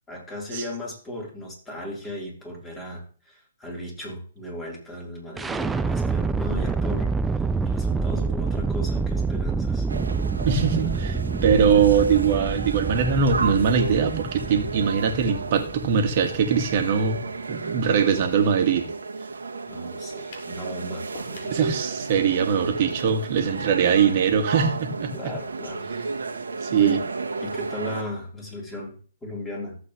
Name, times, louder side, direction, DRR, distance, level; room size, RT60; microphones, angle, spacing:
voice 1, 0.1-9.9 10.8-10.9 19.7-21.6 25.1-25.9 26.8-27.1 27.4-29.8, left 1 dB, 15° left, -2 dB, 4.2 m, -36 dB
sound 1, 5.4-17.2, right 4 dB, 10° right, 0.4 m, -27 dB
sound 2, 9.9-28.0, right 4 dB, 75° right, 1.5 m, -33 dB
voice 2, 10.4-11.1 11.4-17.2 17.5-18.9 21.5-25.1 26.6-27.0, right 6 dB, 40° right, 5 dB, 1.9 m, -21 dB
sound 3, 20.3-20.6 21.1-21.6, left 3 dB, 45° left, 3.1 m, -43 dB
14.0 x 7.9 x 3.3 m, 0.40 s
figure-of-eight pair, 130°, 0 cm